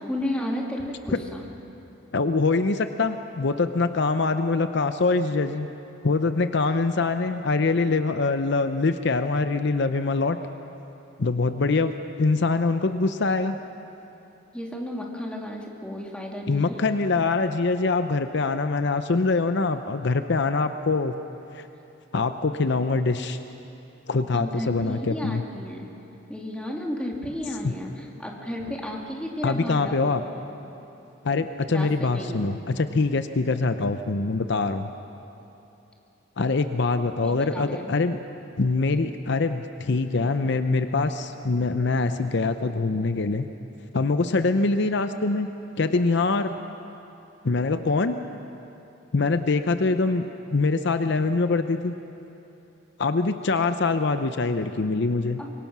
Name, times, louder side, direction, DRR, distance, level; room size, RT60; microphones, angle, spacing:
voice 1, 0.1-1.4 14.5-16.8 24.3-25.9 26.3-30.2 31.7-32.5 37.2-38.0 55.4-55.5, left 1 dB, 5° left, -1 dB, 2.4 m, -33 dB
voice 2, 2.1-5.7 6.0-10.4 11.2-13.6 16.5-21.1 21.5-21.7 22.1-23.4 24.1-25.4 27.6-27.7 29.4-30.2 31.2-34.9 36.4-38.2 38.6-43.5 43.9-45.5 45.8-46.6 47.4-48.2 49.1-50.2 50.5-51.9 53.0-55.4, left 3 dB, 60° left, 9 dB, 0.7 m, -24 dB
25.5 x 23.0 x 6.1 m, 2.9 s
head